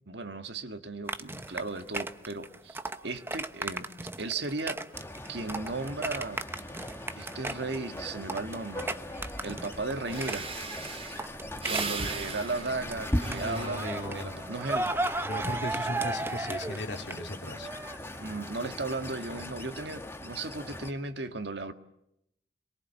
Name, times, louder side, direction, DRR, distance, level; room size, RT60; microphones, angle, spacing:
voice 1, 0.1-3.9 4.2-4.8 5.3-6.5 7.1-8.9 9.4-10.5 11.6-14.9 18.2-21.7, right 3 dB, 65° right, 8 dB, 1.7 m, -36 dB
sound 1, 1.1-10.9 11.2-12.9 13.3-18.2, right 2 dB, 15° right, 0.9 m, -35 dB
sound 2, 4.9-20.9, left 1 dB, 15° left, 2.1 m, -40 dB
Breathing, 9.7-9.8 10.1-14.3 14.8-15.2, right 4 dB, 30° right, 2.9 m, -38 dB
voice 2, 13.3-14.4 15.2-17.7, left 1 dB, 65° left, 5 dB, 2.9 m, -37 dB
27.0 x 22.5 x 8.2 m, 0.80 s
head